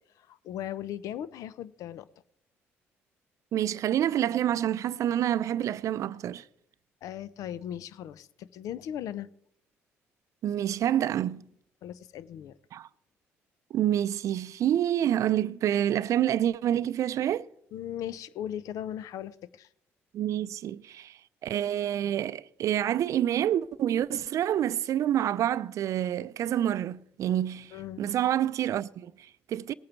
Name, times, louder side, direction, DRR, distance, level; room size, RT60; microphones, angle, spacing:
voice 1, 0.2-2.1 7.0-9.3 11.8-12.5 17.7-19.7 27.7-28.0, left 10 dB, 70° left, 0.6 m, -38 dB
voice 2, 3.5-6.4 10.4-11.5 12.7-12.9 13.7-17.5 20.1-29.7, right 11 dB, 65° right, 0.5 m, -28 dB
19.0 x 8.6 x 4.5 m
supercardioid pair, 60°, 6 cm